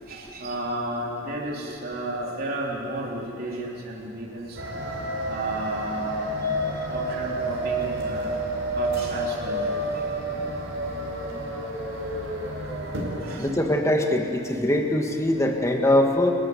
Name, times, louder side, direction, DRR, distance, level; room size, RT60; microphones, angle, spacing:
voice 1, 0.1-4.6 5.2-6.2 6.9-8.3 8.7-9.7 13.2-13.5, right 1 dB, 45° right, -3 dB, 3.7 m, -32 dB
sound 1, 4.6-13.4, right 1 dB, 60° right, 5.1 m, -29 dB
voice 2, 13.4-16.3, left 1 dB, 15° left, 2 dB, 1.9 m, -22 dB
29.5 x 15.5 x 9.7 m, 2.7 s
head